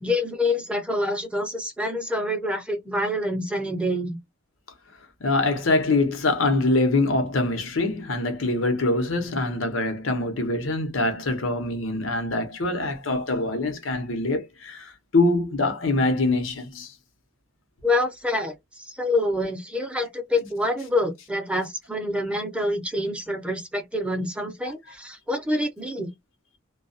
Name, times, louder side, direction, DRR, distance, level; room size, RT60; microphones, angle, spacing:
voice 1, 0.0-4.2 17.8-26.1, left 1 dB, 5° right, 0.6 m, -26 dB
voice 2, 5.2-16.9, left 2 dB, 90° left, 0.8 m, -24 dB
2.2 x 2.2 x 2.6 m
head